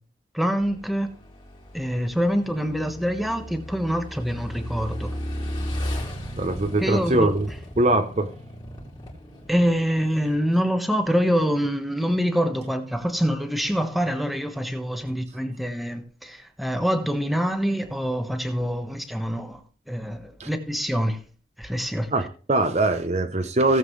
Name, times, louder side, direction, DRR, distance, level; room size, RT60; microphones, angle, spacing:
voice 1, 0.3-1.1 1.7-5.1 6.8-7.3 9.5-21.2 21.6-22.1, equal, ahead, 1.2 m, -25 dB
Motorcycle / Engine, 0.6-10.4, equal, 25° left, 2.9 m, -35 dB
voice 2, 6.4-7.5 7.8-8.3 20.4-20.5 22.1-23.8, right 2 dB, 40° right, 0.7 m, -22 dB
17.5 x 7.5 x 3.2 m
head